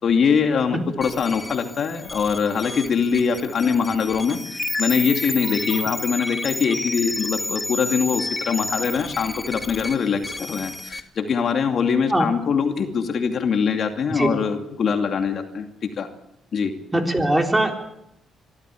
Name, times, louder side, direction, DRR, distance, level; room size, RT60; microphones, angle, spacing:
voice 1, 0.0-16.1 16.5-16.7, left 6 dB, 55° left, 6 dB, 2.5 m, -23 dB
sound 1, 1.0-11.0, left 2 dB, 15° left, 1.7 m, -31 dB
voice 2, 16.9-17.7, right 1 dB, 15° right, 4 dB, 3.7 m, -20 dB
23.5 x 14.0 x 8.5 m, 0.81 s
cardioid pair, 90°, 0 cm